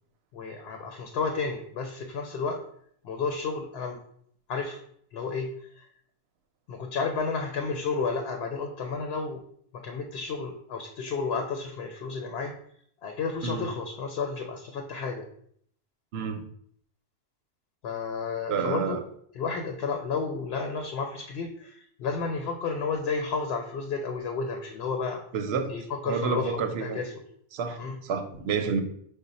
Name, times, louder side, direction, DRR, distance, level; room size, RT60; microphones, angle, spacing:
voice 1, 0.3-2.6 3.0-4.0 4.5-4.8 5.1-5.9 6.7-9.4 9.7-12.5 13.0-15.3 17.8-19.0 19.3-25.2 25.7-27.1 27.8-28.0, left 4 dB, 80° left, 0.8 m, -32 dB
voice 2, 16.1-16.5 18.5-19.0 25.3-25.8 26.1-27.0 27.5-28.8, right 5 dB, 80° right, 0.8 m, -29 dB
5.0 x 2.1 x 4.0 m
omnidirectional pair, 1.1 m